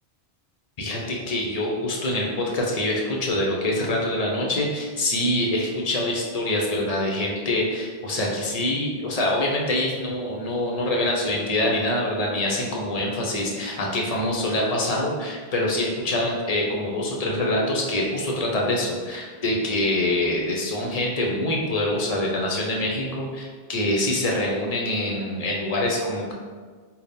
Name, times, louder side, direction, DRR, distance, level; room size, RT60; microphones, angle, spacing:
voice 1, 0.8-26.3, left 1 dB, 45° left, -1 dB, 0.6 m, -25 dB
3.4 x 2.2 x 4.0 m, 1.5 s
omnidirectional pair, 1.1 m